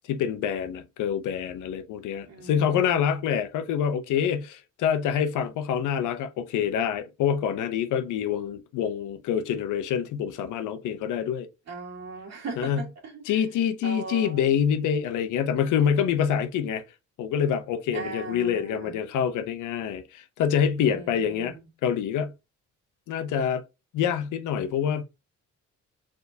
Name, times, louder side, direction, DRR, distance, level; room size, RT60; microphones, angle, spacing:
voice 1, 0.1-11.5 12.6-12.8 13.3-16.8 17.2-21.6 21.8-22.3 23.1-23.6 23.9-25.0, left 8 dB, 80° left, 0.7 m, -26 dB
voice 2, 2.3-3.0 11.7-13.4 13.8-14.5 17.9-19.0 20.8-21.6, right 4 dB, 60° right, 2.0 m, -39 dB
4.3 x 3.6 x 2.7 m
cardioid pair, 90°, 30 cm